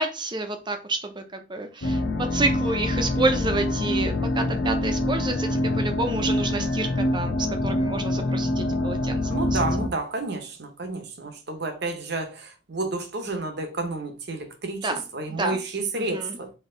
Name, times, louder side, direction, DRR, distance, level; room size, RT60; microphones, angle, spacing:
voice 1, 0.0-9.2 9.5-9.6 14.8-15.0 15.3-15.6 16.0-16.4, right 2 dB, 25° right, 0.6 m, -29 dB
sound 1, 1.8-9.9, left 1 dB, 65° left, 0.7 m, -25 dB
voice 2, 9.3-16.5, right 3 dB, 55° right, 0.8 m, -31 dB
4.4 x 2.9 x 3.7 m
head